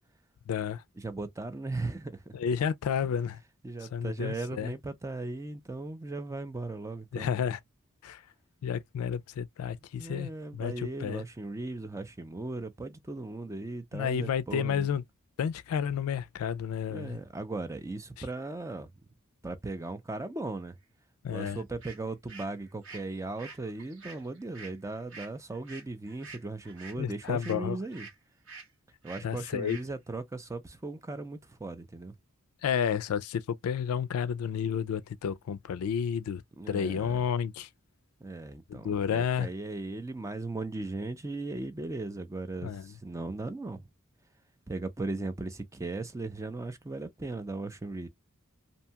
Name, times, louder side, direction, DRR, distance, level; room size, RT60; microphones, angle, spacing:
voice 1, 0.5-0.8 2.3-3.4 3.9-4.7 7.1-7.6 8.0-8.2 8.6-11.2 13.9-15.0 15.4-17.2 21.2-21.6 27.0-27.8 29.2-29.8 32.6-36.4 36.7-37.7 38.7-39.5 42.6-42.9, left 7 dB, 85° left, 0.3 m, -31 dB
voice 2, 1.0-2.4 3.6-7.4 10.0-14.9 16.9-18.9 19.4-20.8 21.3-28.1 29.0-32.1 36.6-37.2 38.2-43.9 44.7-48.1, right 2 dB, 15° right, 0.4 m, -37 dB
sound 1, 21.4-21.5 21.8-28.2 28.5-28.7 29.0-29.3 29.7-29.9, right 4 dB, 65° right, 1.4 m, -48 dB
2.7 x 2.2 x 2.8 m
head